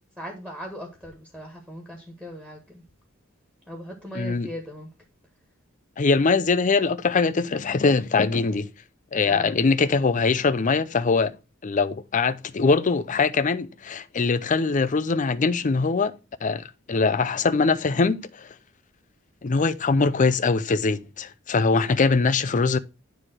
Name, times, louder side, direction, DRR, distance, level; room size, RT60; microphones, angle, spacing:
voice 1, 0.2-2.8 3.7-4.9 9.2-9.6, equal, 5° right, 1.8 m, -38 dB
voice 2, 4.1-4.5 6.0-8.7 9.1-11.3 11.6-16.1 16.4-18.5 19.4-22.8, left 4 dB, 40° left, 0.5 m, -22 dB
9.8 x 3.4 x 6.1 m
head